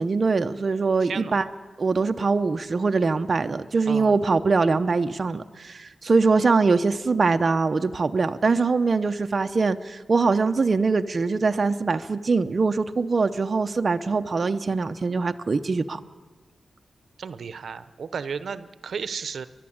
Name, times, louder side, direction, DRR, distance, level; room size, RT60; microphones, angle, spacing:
voice 1, 0.0-1.4 1.8-16.0, right 4 dB, 45° right, 7 dB, 0.7 m, -23 dB
voice 2, 1.0-1.4 3.9-4.1 17.2-19.5, right 6 dB, 85° right, 13 dB, 0.8 m, -33 dB
30.0 x 11.5 x 8.7 m, 1.4 s
wide cardioid pair, 140°, 0 cm